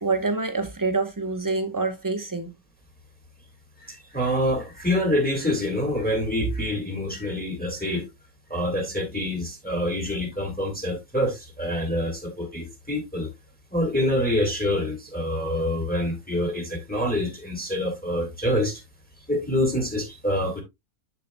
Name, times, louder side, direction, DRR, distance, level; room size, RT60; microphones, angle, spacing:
voice 1, 0.0-2.5, right 3 dB, 15° right, 1.0 m, -26 dB
voice 2, 3.8-8.1 8.5-13.3 13.7-18.8 19.3-20.6, left 1 dB, 5° left, 1.7 m, -26 dB
7.6 x 7.4 x 2.2 m
omnidirectional pair, 1.5 m